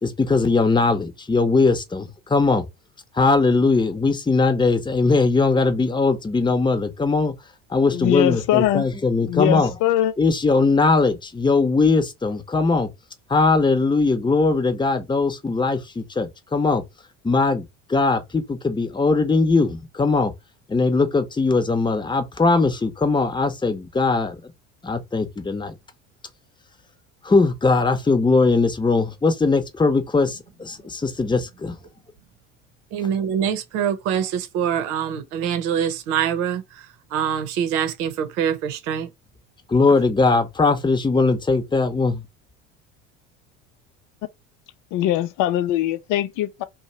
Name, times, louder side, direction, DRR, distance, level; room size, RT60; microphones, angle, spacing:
voice 1, 0.0-2.6 3.1-7.3 7.7-9.8 10.2-12.9 13.3-16.8 17.2-20.3 20.7-24.4 24.8-25.7 27.2-31.8 39.7-42.2, left 3 dB, 10° left, 0.9 m, -20 dB
voice 2, 7.9-8.9 9.2-10.1 44.9-46.6, left 12 dB, 55° left, 0.6 m, -21 dB
voice 3, 32.9-39.1, right 8 dB, 70° right, 0.8 m, -25 dB
2.8 x 2.3 x 4.0 m
hypercardioid pair, 75°, 38 cm